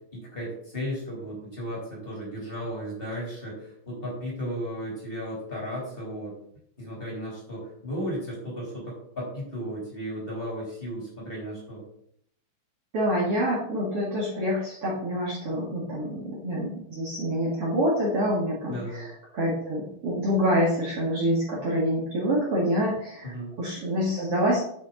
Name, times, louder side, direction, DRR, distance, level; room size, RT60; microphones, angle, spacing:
voice 1, 0.1-6.3 6.8-11.8 18.7-19.1 23.2-23.5, equal, 15° left, -4 dB, 2.6 m, -35 dB
voice 2, 12.9-23.3 23.6-24.6, equal, 50° right, -6 dB, 1.8 m, -26 dB
10.5 x 5.7 x 4.0 m, 0.69 s
omnidirectional pair, 5.4 m